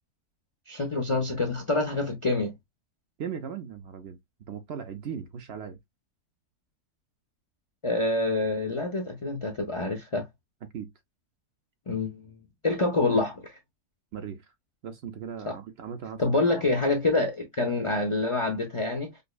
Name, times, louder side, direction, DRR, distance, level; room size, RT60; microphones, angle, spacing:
voice 1, 0.7-2.5 7.8-10.3 11.9-12.2 12.6-13.6 15.5-15.6 16.2-19.1, left 2 dB, 55° left, 0.3 m, -26 dB
voice 2, 3.2-4.2 4.5-5.8 10.7-10.9 14.1-14.4 14.8-16.2, right 7 dB, 60° right, 0.7 m, -37 dB
5.1 x 2.1 x 2.2 m
omnidirectional pair, 1.5 m